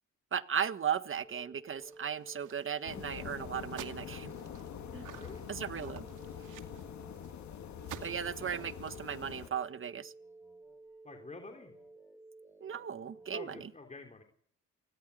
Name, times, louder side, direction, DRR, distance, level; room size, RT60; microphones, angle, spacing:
voice 1, 0.3-4.3 4.9-5.1 5.5-6.0 8.0-10.1 12.6-13.7, right 8 dB, 45° right, 11 dB, 1.7 m, -36 dB
sound 1, 1.2-13.6, right 2 dB, 10° left, 5.9 m, -54 dB
sound 2, 1.8-2.8 3.2-3.3 3.7-7.4 7.8-9.0, right 11 dB, 80° right, 2.3 m, -51 dB
sound 3, 2.8-9.5, left 9 dB, 70° left, 2.0 m, -45 dB
voice 2, 5.1-5.4 11.0-11.7 13.3-14.2, left 3 dB, 25° left, 3 dB, 3.4 m, -48 dB
28.5 x 20.0 x 8.4 m, 0.65 s
cardioid pair, 90°, 30 cm